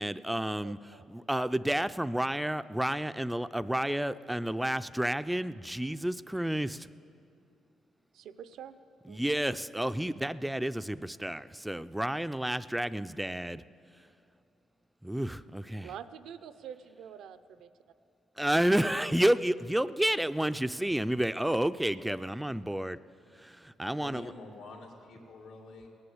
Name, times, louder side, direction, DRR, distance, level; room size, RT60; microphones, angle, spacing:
voice 1, 0.0-6.9 9.1-13.6 15.0-15.9 18.4-23.0 23.3-24.3, right 1 dB, 5° right, 13 dB, 0.4 m, -30 dB
voice 2, 0.6-1.0 8.1-8.8 9.1-9.2 15.8-17.7, right 8 dB, 80° right, 12 dB, 0.6 m, -46 dB
voice 3, 24.0-25.9, left 3 dB, 90° left, -2 dB, 2.5 m, -47 dB
18.0 x 9.9 x 7.9 m, 2.8 s
cardioid pair, 90°, 0 cm